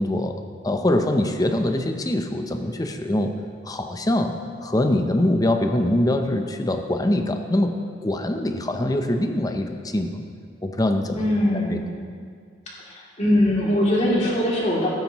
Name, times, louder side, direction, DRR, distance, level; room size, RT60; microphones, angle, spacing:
voice 1, 0.0-3.3 3.7-10.2 10.6-11.2 11.7-11.8, left 1 dB, 20° left, 5 dB, 0.7 m, -23 dB
voice 2, 11.1-11.9 12.8-14.9, left 1 dB, 40° left, -6 dB, 2.9 m, -21 dB
16.5 x 9.4 x 3.0 m, 2.1 s
head